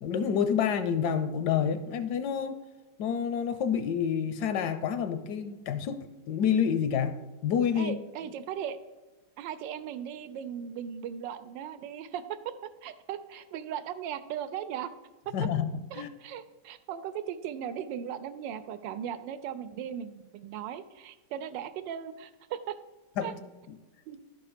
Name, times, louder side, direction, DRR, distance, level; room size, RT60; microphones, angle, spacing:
voice 1, 0.0-2.6 3.0-7.2 7.4-8.0 15.3-15.7 15.9-16.1 23.2-23.4 23.7-23.8, left 7 dB, 75° left, 10 dB, 1.1 m, -28 dB
voice 2, 7.8-8.8 9.4-12.5 12.8-14.9 15.9-22.8 23.2-23.3 24.1-24.2, right 9 dB, 90° right, 12 dB, 1.3 m, -38 dB
11.5 x 4.4 x 5.0 m, 1.2 s
omnidirectional pair, 1.9 m